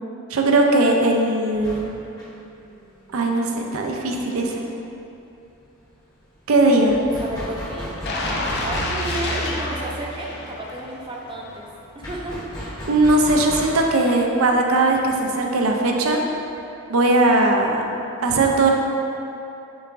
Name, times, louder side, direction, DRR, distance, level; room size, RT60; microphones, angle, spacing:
voice 1, 0.3-1.9 3.1-4.6 6.5-7.0 12.9-16.2 16.9-17.9 18.2-18.7, right 2 dB, 75° right, 1 dB, 0.5 m, -19 dB
sound 1, 1.5-4.9 5.2-5.3 5.6-16.6, equal, 15° left, 0.7 m, -36 dB
voice 2, 7.2-8.0 8.6-11.7 11.9-12.4, right 1 dB, 25° right, -1 dB, 0.4 m, -32 dB
sound 2, 8.1-11.0 11.4-11.6, left 1 dB, 50° left, 0.5 m, -28 dB
6.1 x 3.4 x 2.5 m, 2.8 s
head